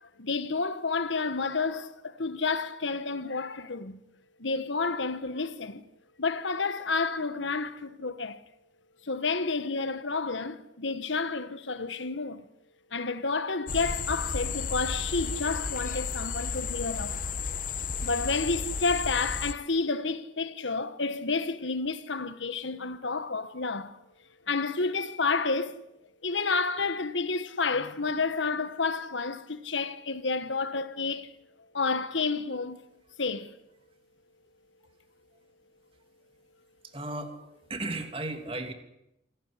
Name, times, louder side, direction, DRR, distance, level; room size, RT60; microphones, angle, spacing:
voice 1, 0.0-4.0 4.4-5.8 6.2-8.4 9.0-12.4 12.9-17.3 18.0-24.0 24.5-25.8 26.2-31.3 31.7-32.8 33.2-33.5, left 4 dB, 85° left, 1.5 m, -30 dB
sound 1, 13.7-19.5, left 5 dB, 45° left, 1.1 m, -33 dB
voice 2, 36.8-37.4 37.7-38.7, right 2 dB, 30° right, 2.7 m, -35 dB
27.5 x 15.0 x 10.0 m
head